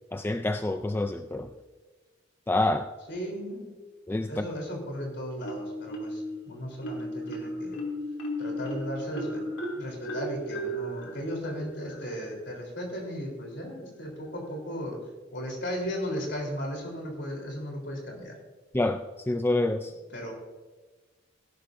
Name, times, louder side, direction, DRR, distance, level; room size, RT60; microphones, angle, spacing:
voice 1, 0.1-1.5 2.5-2.9 4.1-4.4 18.7-19.0 19.3-19.9, left 2 dB, 10° left, 8 dB, 0.3 m, -27 dB
voice 2, 3.1-3.7 4.3-7.8 8.4-9.5 9.7-15.0 15.3-18.3 20.1-20.3, equal, 60° left, 1 dB, 3.6 m, -36 dB
Marimba xylophone, 5.4-6.4 6.8-12.3, equal, 75° left, 2.8 m, -35 dB
18.0 x 11.0 x 2.6 m, 1.3 s
head